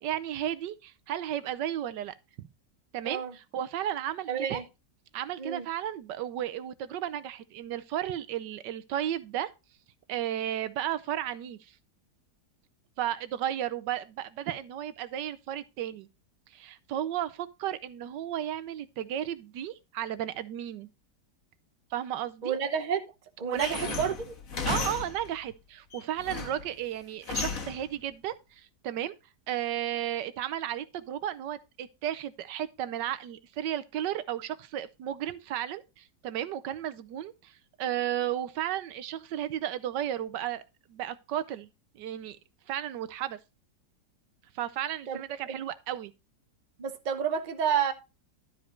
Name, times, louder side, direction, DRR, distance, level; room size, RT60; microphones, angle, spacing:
voice 1, 0.0-2.5 2.9-4.6 5.1-9.5 10.1-11.7 13.0-16.1 16.5-20.9 21.9-22.6 23.4-23.9 24.7-29.1 29.5-40.6 40.9-41.7 41.9-42.4 42.7-43.4 44.5-46.1, right 11 dB, 85° right, 1.4 m, -34 dB
voice 2, 4.3-4.6 5.4-5.7 22.4-23.1 23.4-24.4 45.1-45.2 45.5-45.6 46.8-47.9, right 7 dB, 35° right, 0.9 m, -30 dB
sound 1, 23.6-25.4 25.9-26.7 27.3-27.9, left 4 dB, 55° left, 1.7 m, -34 dB
12.0 x 5.0 x 4.4 m
omnidirectional pair, 1.8 m